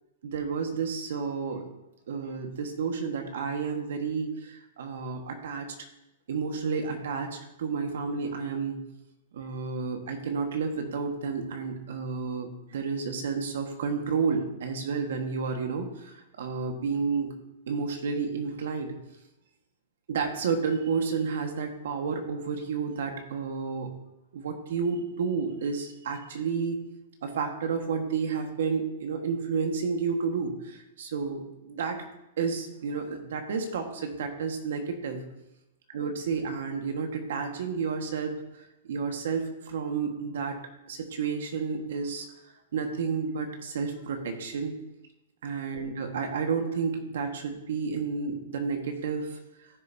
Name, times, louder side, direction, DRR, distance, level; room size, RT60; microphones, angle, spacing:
voice 1, 0.2-1.7 2.1-5.7 6.3-8.8 9.3-17.3 17.7-18.9 20.1-23.9 24.3-26.8 27.2-32.0 32.4-35.2 35.9-38.3 38.9-40.6 40.9-42.3 42.7-44.7 45.4-49.4, right 5 dB, 70° right, 4 dB, 1.5 m, -31 dB
15.5 x 6.6 x 2.7 m, 0.89 s
hypercardioid pair, 165°, 0 cm